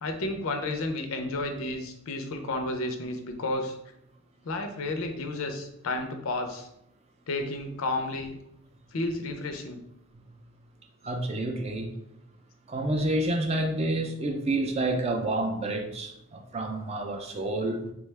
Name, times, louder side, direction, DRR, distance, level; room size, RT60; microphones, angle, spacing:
voice 1, 0.0-3.8 4.4-6.7 7.3-8.4 8.9-9.8, left 2 dB, 85° left, 6 dB, 0.5 m, -32 dB
voice 2, 11.0-11.9 12.7-17.9, right 2 dB, 30° right, 4 dB, 0.4 m, -29 dB
3.5 x 2.2 x 3.2 m, 0.79 s
head